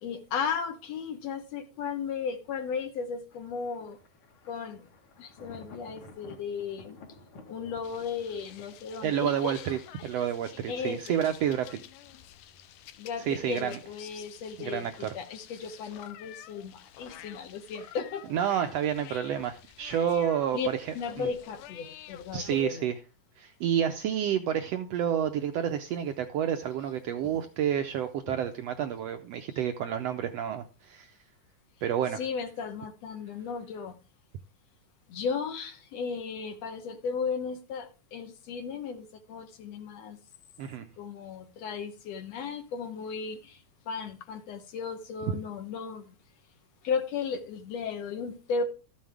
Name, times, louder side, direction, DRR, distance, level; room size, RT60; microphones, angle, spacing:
voice 1, 0.0-4.0 4.5-4.9 5.2-7.0 7.5-9.5 10.7-11.2 13.0-18.2 20.5-20.7 21.0-22.9 27.3-27.4 28.3-28.4 32.2-34.0 35.1-40.2 41.0-46.2 46.8-48.6, left 5 dB, 65° left, 7 dB, 2.0 m, -35 dB
Thunder, 3.3-9.7, left 2 dB, 50° left, 2.2 m, -53 dB
sound 1, 7.8-22.6, left 12 dB, 85° left, 2.3 m, -50 dB
voice 2, 9.0-11.8 13.2-13.8 14.6-15.1 18.3-20.8 21.2-21.3 22.3-23.0 23.4-31.1 31.8-32.2 40.6-40.9 45.3-45.4, right 9 dB, 80° right, 7 dB, 1.5 m, -29 dB
13.5 x 7.5 x 3.5 m, 0.32 s
omnidirectional pair, 3.5 m